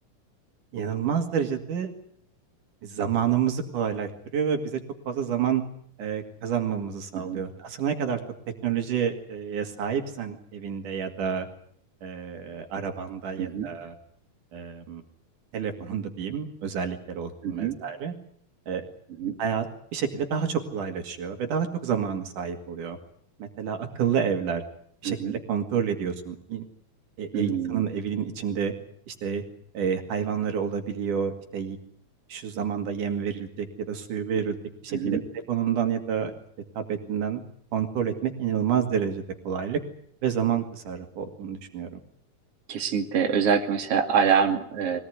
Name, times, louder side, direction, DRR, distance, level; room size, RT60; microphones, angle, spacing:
voice 1, 0.7-1.9 2.8-4.8 5.1-5.6 6.0-8.2 8.6-11.5 12.0-13.9 14.5-15.0 15.5-18.1 18.7-18.8 19.4-19.7 19.9-23.0 23.4-24.6 25.0-26.6 27.2-28.7 29.1-29.4 29.7-31.8 32.3-34.6 34.8-35.2 35.5-36.3 36.8-37.4 37.7-39.8 40.2-42.0, right 7 dB, 75° right, 5 dB, 3.8 m, -29 dB
voice 2, 13.4-13.7 17.4-17.7 19.2-19.4 25.0-25.4 27.3-27.9 34.9-35.2 42.7-45.0, right 7 dB, 50° right, 2 dB, 3.4 m, -25 dB
23.5 x 18.5 x 9.6 m, 0.64 s
omnidirectional pair, 3.7 m